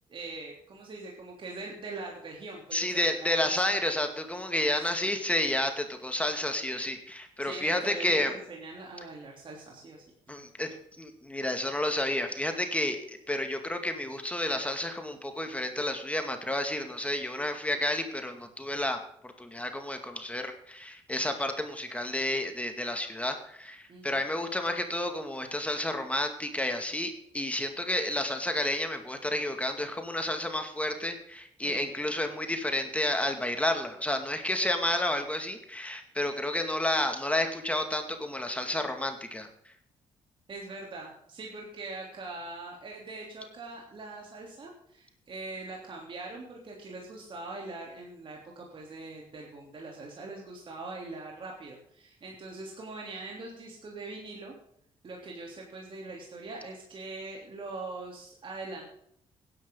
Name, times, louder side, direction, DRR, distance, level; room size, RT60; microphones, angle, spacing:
voice 1, 0.1-3.9 5.0-5.1 7.4-10.4 23.9-24.2 31.6-31.9 40.5-54.5 55.0-59.0, right 3 dB, 50° right, -1 dB, 3.4 m, -42 dB
voice 2, 2.7-8.3 10.3-39.5, left 1 dB, 10° left, 6 dB, 2.2 m, -31 dB
16.5 x 10.5 x 3.9 m, 0.71 s
supercardioid pair, 65°, 11 cm